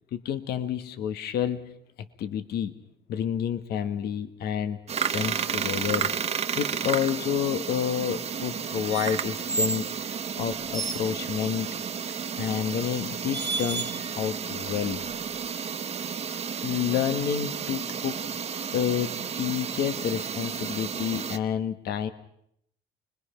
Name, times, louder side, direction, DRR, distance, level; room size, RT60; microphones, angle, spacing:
voice 1, 0.1-1.6 2.2-2.7 3.1-4.8 5.1-6.1 6.6-9.8 10.4-11.7 12.4-15.0 16.6-18.2 18.7-22.1, left 9 dB, 70° left, 9 dB, 1.6 m, -29 dB
sound 1, 4.9-21.4, right 7 dB, 40° right, 1.4 m, -32 dB
sound 2, 8.9-9.9 10.5-11.1 12.4-12.6 13.3-14.2 14.6-15.5, right 3 dB, 25° right, 1.4 m, -33 dB
29.5 x 21.5 x 5.8 m, 0.74 s
cardioid pair, 110°, 17 cm